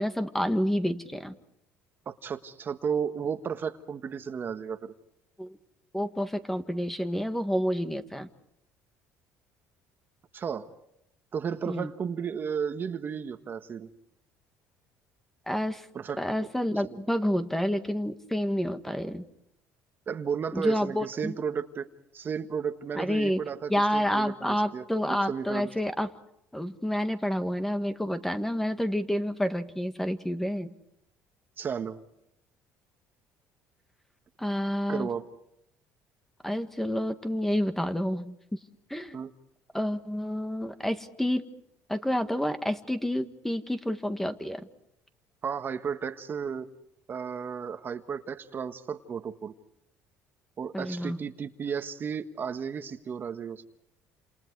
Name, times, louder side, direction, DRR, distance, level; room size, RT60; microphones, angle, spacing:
voice 1, 0.0-1.4 5.4-5.5 5.9-8.3 11.7-11.9 15.5-15.9 16.2-19.2 20.5-21.4 22.9-23.4 23.7-26.1 26.5-30.7 34.4-35.1 36.4-38.4 38.9-39.2 39.7-41.4 41.9-44.7 50.7-51.2, equal, 5° left, 8 dB, 1.7 m, -29 dB
voice 2, 2.0-4.9 10.3-10.7 11.3-13.9 15.9-16.2 16.7-17.0 20.1-21.9 22.1-25.7 31.6-32.0 34.9-35.2 39.1-39.3 45.4-46.7 47.1-49.5 50.6-53.6, right 7 dB, 40° right, 8 dB, 1.5 m, -33 dB
29.0 x 28.0 x 4.8 m, 0.78 s
cardioid pair, 110°, 6 cm